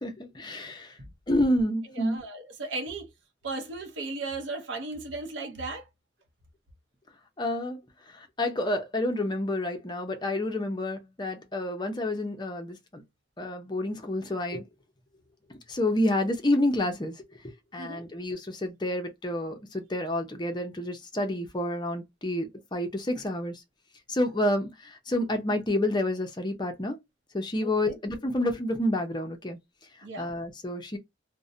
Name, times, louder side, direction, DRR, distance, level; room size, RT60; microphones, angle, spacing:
voice 1, 0.0-0.9 1.3-2.2 7.4-7.8 8.1-13.0 13.4-14.6 15.7-17.1 17.7-23.6 24.1-27.0 27.3-29.6 30.2-31.0, left 1 dB, 25° left, 0.6 m, -29 dB
voice 2, 2.0-3.1 3.4-5.9 17.8-18.1 27.6-27.9 30.0-30.3, right 3 dB, 85° right, 0.7 m, -36 dB
2.5 x 2.1 x 2.5 m
head